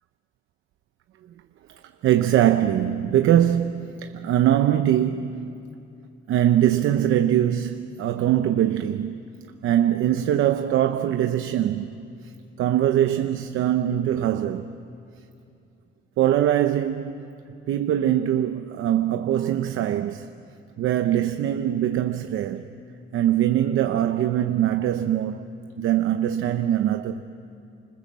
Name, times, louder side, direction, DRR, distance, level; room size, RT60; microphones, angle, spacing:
voice 1, 2.0-5.6 6.3-9.2 9.6-11.9 12.6-14.8 16.2-17.3 17.7-20.3 20.8-22.7 23.1-25.5 25.8-27.2, right 11 dB, 85° right, 0.8 m, -22 dB
28.5 x 26.0 x 7.5 m
cardioid pair, 160°, 20 cm